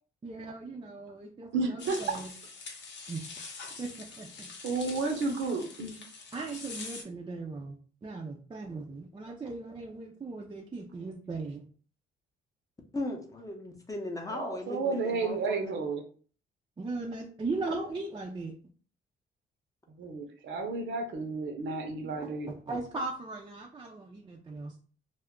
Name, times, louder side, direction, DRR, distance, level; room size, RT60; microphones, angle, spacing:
voice 1, 0.2-2.3 3.1-3.2 3.8-4.5 6.3-7.8 8.0-11.6 16.8-18.5 22.2-24.8, right 3 dB, 25° right, -1 dB, 0.5 m, -38 dB
voice 2, 1.5-2.0 4.6-6.0 14.3-16.0 20.0-22.5, right 3 dB, 70° right, 4 dB, 0.7 m, -32 dB
sound 1, 1.8-7.0, left 4 dB, 65° left, 0.7 m, -44 dB
voice 3, 12.9-15.7, left 2 dB, 15° left, 1 dB, 0.7 m, -37 dB
2.3 x 2.1 x 3.6 m, 0.42 s
cardioid pair, 90°, 20 cm